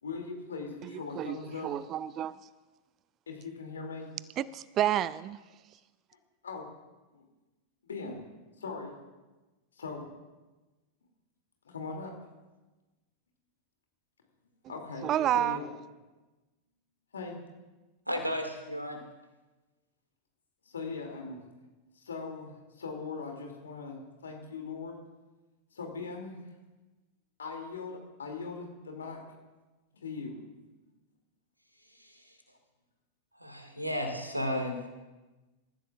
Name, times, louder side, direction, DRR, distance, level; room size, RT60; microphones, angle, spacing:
voice 1, 0.0-1.8 3.3-4.1 6.4-6.7 7.1-7.2 7.8-8.2 8.6-8.9 9.8-10.1 11.6-12.1 14.7-15.1 15.3-15.7 17.1-17.4 20.7-21.4 21.9-25.0 25.7-26.4 27.4-29.2 30.0-30.4, left 4 dB, 70° left, 2 dB, 2.7 m, -40 dB
voice 2, 0.8-1.4 1.6-2.4 4.4-5.4 15.0-15.6, right 11 dB, 30° right, 18 dB, 0.4 m, -30 dB
voice 3, 18.1-19.0 31.9-32.4 33.3-34.9, equal, 90° right, 4 dB, 2.2 m, -34 dB
27.0 x 14.5 x 2.5 m, 1.2 s
figure-of-eight pair, 90°, 0 cm